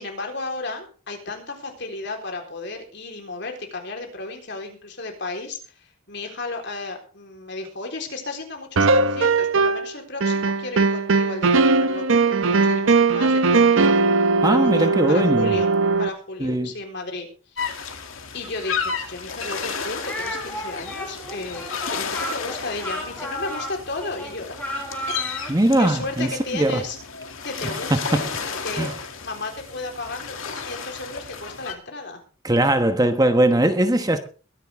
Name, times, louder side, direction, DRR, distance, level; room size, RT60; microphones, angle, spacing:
voice 1, 0.0-14.1 14.4-15.7 16.0-18.0 18.3-24.6 25.2-27.0 27.4-28.9 29.2-32.2, left 3 dB, 60° left, 3.9 m, -34 dB
sound 1, 8.8-9.9 10.2-16.1, right 4 dB, 75° right, 0.7 m, -19 dB
voice 2, 14.4-15.5 16.4-16.7 25.5-26.8 27.9-28.2 28.8-28.9 32.4-34.2, right 1 dB, 20° right, 1.1 m, -20 dB
sound 2, 17.6-31.7, left 6 dB, 85° left, 2.4 m, -33 dB
Speech, 20.1-25.5, equal, 5° left, 4.1 m, -33 dB
22.0 x 10.5 x 3.6 m
head